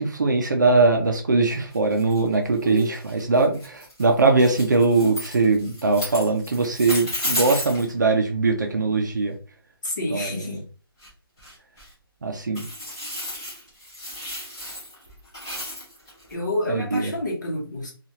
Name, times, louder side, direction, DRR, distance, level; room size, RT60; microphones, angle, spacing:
voice 1, 0.0-9.4 10.1-10.6 12.2-12.6 16.7-17.1, right 3 dB, 50° right, 4 dB, 0.5 m, -21 dB
sound 1, 1.7-7.9 11.0-11.1 11.4-11.9 12.5-16.3, left 1 dB, 10° left, 0.5 m, -33 dB
voice 2, 9.8-10.6 16.3-17.9, left 1 dB, 50° left, -3 dB, 1.0 m, -28 dB
2.9 x 2.4 x 2.7 m, 0.37 s
hypercardioid pair, 180°, 13 cm